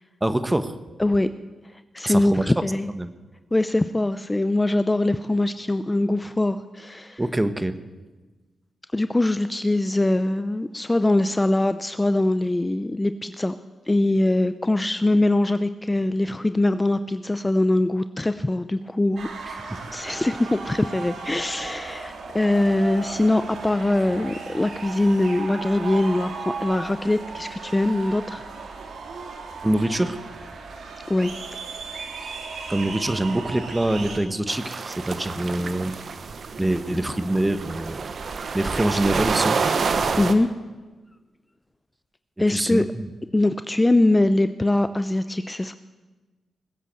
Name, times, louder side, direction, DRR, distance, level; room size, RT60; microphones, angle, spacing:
voice 1, 0.2-0.8 2.0-2.5 3.0-3.1 7.2-7.8 19.4-19.8 29.6-30.2 32.7-36.0 36.6-38.1 38.5-39.6 40.0-40.2 42.5-43.1, right 1 dB, 15° right, 11 dB, 1.2 m, -25 dB
voice 2, 1.9-2.9 3.5-7.2 8.9-13.5 13.9-19.3 19.9-26.3 26.6-28.4 31.1-31.6 40.2-40.5 42.4-42.9 43.3-45.7, left 2 dB, 20° left, 11 dB, 0.6 m, -22 dB
sound 1, 19.2-34.2, right 4 dB, 75° right, 2.2 m, -36 dB
sound 2, 34.5-40.3, right 5 dB, 60° right, 1.2 m, -28 dB
20.0 x 8.1 x 7.6 m, 1.2 s
cardioid pair, 65°, 0 cm